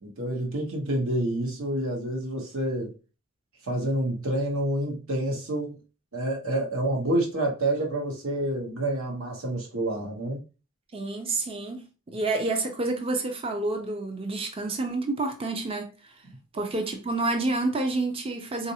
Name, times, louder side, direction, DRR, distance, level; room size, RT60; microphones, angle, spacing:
voice 1, 0.0-2.9 3.6-5.8 6.1-10.4, right 1 dB, 60° right, 1.1 m, -28 dB
voice 2, 10.9-15.9 16.5-18.7, right 2 dB, 25° right, 0.5 m, -29 dB
3.9 x 2.5 x 2.8 m
head